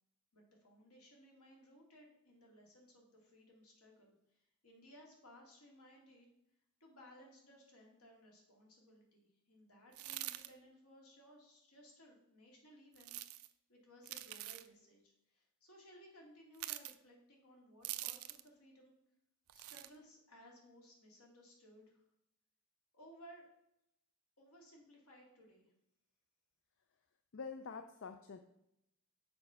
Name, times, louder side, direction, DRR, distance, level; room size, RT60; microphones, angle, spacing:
voice 1, 0.3-6.3 6.8-13.1 13.7-18.9 19.5-22.0 22.9-23.5 24.4-25.7, equal, 75° left, -1 dB, 2.4 m, -61 dB
sound 1, 9.9-10.5 13.0-13.5 14.0-14.7 16.5-16.9 17.8-18.5 19.5-19.9, right 15 dB, 70° right, 0.5 m, -44 dB
voice 2, 27.3-28.4, left 5 dB, 55° left, 8 dB, 0.5 m, -46 dB
6.9 x 5.3 x 5.6 m, 0.81 s
head